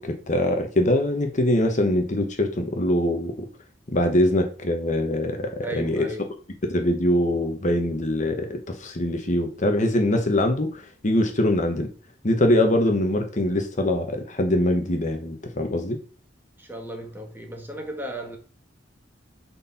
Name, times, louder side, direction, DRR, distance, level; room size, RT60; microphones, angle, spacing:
voice 1, 0.0-3.3 3.9-6.1 6.7-11.9 12.2-16.0, left 1 dB, 40° left, 1.1 m, -23 dB
voice 2, 5.6-6.3 16.6-18.4, right 1 dB, 10° right, 1.7 m, -35 dB
9.3 x 4.4 x 4.2 m
head